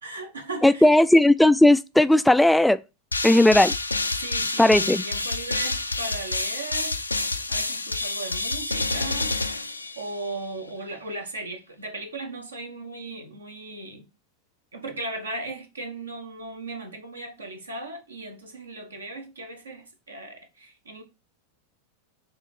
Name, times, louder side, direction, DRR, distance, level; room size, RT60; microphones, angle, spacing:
voice 1, 0.0-1.0 4.1-7.0 7.5-9.4 9.9-14.0 14.7-21.0, right 2 dB, 75° right, 1.5 m, -37 dB
voice 2, 0.6-2.8 3.2-3.7 4.6-5.0, left 1 dB, 5° left, 0.3 m, -16 dB
sound 1, 3.1-10.4, left 2 dB, 85° left, 0.5 m, -28 dB
7.4 x 3.2 x 6.2 m
figure-of-eight pair, 90°, 0 cm